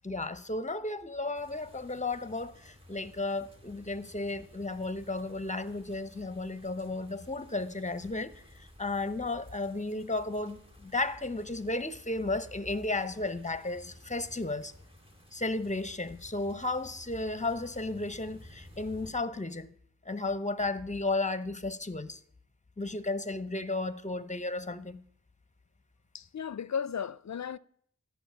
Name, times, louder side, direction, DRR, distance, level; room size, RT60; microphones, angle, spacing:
voice 1, 0.0-14.7 15.3-19.7 20.1-22.2 22.8-25.0, left 2 dB, 20° left, 0.8 m, -34 dB
sound 1, 1.4-19.1, left 1 dB, 15° right, 2.3 m, -55 dB
voice 2, 26.1-27.6, left 7 dB, 55° left, 0.5 m, -35 dB
13.0 x 5.9 x 8.6 m
wide cardioid pair, 55°, 33 cm